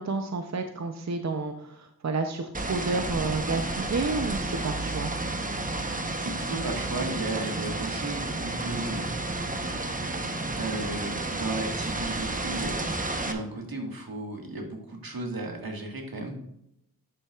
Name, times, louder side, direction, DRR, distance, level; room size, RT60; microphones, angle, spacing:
voice 1, 0.0-5.1, right 3 dB, 50° right, 6 dB, 0.7 m, -30 dB
sound 1, 2.5-13.3, right 2 dB, 20° right, 0.9 m, -31 dB
voice 2, 6.2-9.1 10.0-10.2 10.6-12.8 13.2-16.4, right 2 dB, 70° right, 1 dB, 1.7 m, -34 dB
9.8 x 7.3 x 2.4 m, 0.78 s
wide cardioid pair, 60°, 37 cm